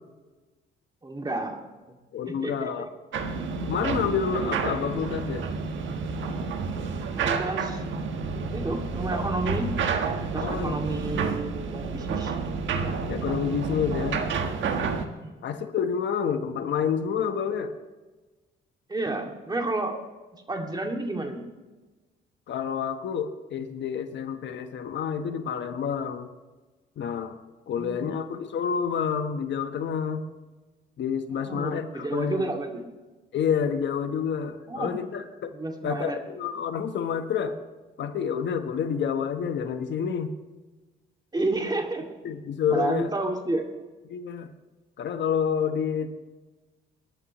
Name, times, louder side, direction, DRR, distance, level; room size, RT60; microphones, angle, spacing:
voice 1, 1.0-2.0 2.3-2.9 7.1-7.8 8.5-9.7 10.2-12.4 15.0-15.5 18.9-20.0 20.5-21.4 27.8-28.1 31.4-32.8 34.7-35.0 35.5-36.2 41.3-42.0 42.7-43.6, right 2 dB, 20° right, 2 dB, 2.3 m, -31 dB
voice 2, 2.1-2.8 3.7-5.4 10.4-10.9 13.1-14.2 15.4-17.7 22.5-26.3 27.0-27.4 27.7-30.2 31.0-32.5 33.3-35.5 35.8-37.6 38.0-40.3 42.2-43.1 44.1-44.5 45.0-46.1, left 7 dB, 65° left, 8 dB, 1.1 m, -28 dB
sound 1, 3.1-15.1, right 5 dB, 75° right, 1.4 m, -29 dB
22.5 x 11.0 x 3.1 m, 1.2 s
cardioid pair, 90°, 20 cm